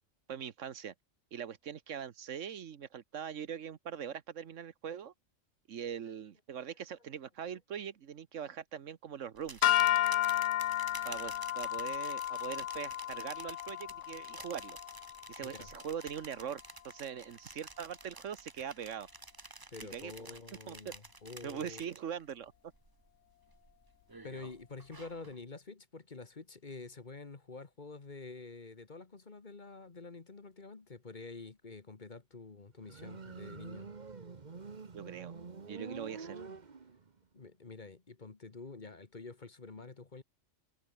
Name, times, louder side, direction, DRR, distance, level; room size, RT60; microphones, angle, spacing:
voice 1, 0.3-0.9 1.3-5.1 5.7-9.7 11.0-14.8 15.3-19.1 19.9-20.3 20.7-20.9 21.4-22.5 34.9-35.4 35.7-36.4, right 8 dB, 70° right, 1.3 m, -42 dB
sound 1, 9.3-22.3 22.7-23.1 23.5-25.4, right 3 dB, 20° right, 1.0 m, -51 dB
sound 2, 9.6-16.0, left 13 dB, 75° left, 0.9 m, -33 dB
voice 2, 19.7-21.8 24.2-33.9 37.3-40.2, left 3 dB, 35° left, 1.5 m, -48 dB
Motorcycle, 32.8-37.2, right 4 dB, 35° right, 1.3 m, -46 dB
omnidirectional pair, 1.3 m